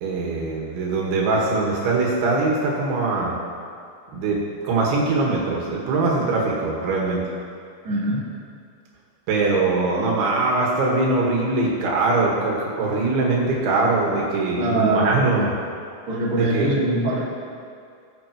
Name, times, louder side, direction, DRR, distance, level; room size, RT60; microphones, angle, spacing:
voice 1, 0.0-3.4 4.1-7.2 9.3-15.5 16.3-16.7, right 3 dB, 80° right, -3 dB, 3.8 m, -22 dB
voice 2, 7.8-8.2 14.6-15.5 16.1-17.3, right 1 dB, 35° right, -8 dB, 2.8 m, -23 dB
19.5 x 8.5 x 3.0 m, 2.3 s
omnidirectional pair, 5.3 m